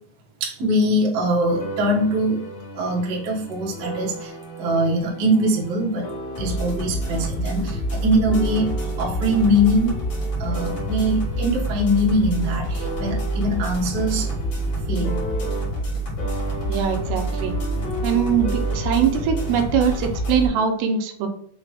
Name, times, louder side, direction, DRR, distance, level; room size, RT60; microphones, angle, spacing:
voice 1, 0.4-2.4 2.7-6.1 6.4-8.7 9.0-9.9 10.4-14.3 14.9-15.2, equal, 70° right, -4 dB, 1.0 m, -22 dB
sound 1, 1.5-15.9 16.2-20.6, equal, 60° left, 2.1 m, -35 dB
sound 2, 6.3-20.5, right 1 dB, 85° left, 0.8 m, -27 dB
voice 2, 16.7-17.6 18.0-21.3, right 7 dB, 85° right, 4 dB, 2.6 m, -22 dB
6.0 x 2.5 x 3.4 m, 0.63 s
omnidirectional pair, 4.2 m